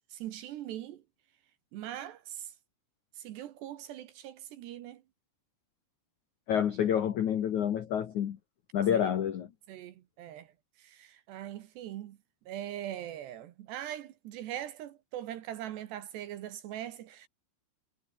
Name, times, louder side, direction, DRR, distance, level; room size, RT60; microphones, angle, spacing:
voice 1, 0.1-1.0 1.7-2.5 3.2-5.0 8.9-9.0 9.7-10.5 10.8-12.2 12.5-17.3, right 12 dB, 70° right, 2.9 m, -41 dB
voice 2, 6.5-8.4 8.7-9.5, left 9 dB, 80° left, 1.7 m, -28 dB
omnidirectional pair, 5.9 m